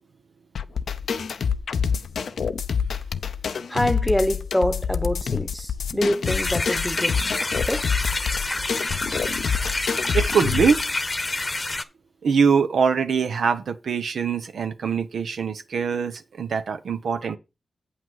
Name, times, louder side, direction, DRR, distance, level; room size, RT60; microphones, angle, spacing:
sound 1, 0.6-10.8, left 6 dB, 85° left, 0.5 m, -27 dB
voice 1, 3.7-7.2 7.6-8.0, left 1 dB, 10° left, 0.9 m, -25 dB
sound 2, 6.2-11.8, left 2 dB, 35° left, 0.9 m, -28 dB
voice 2, 10.1-10.9 12.2-17.4, right 6 dB, 85° right, 0.8 m, -23 dB
8.1 x 5.8 x 4.7 m
cardioid pair, 50°, 0 cm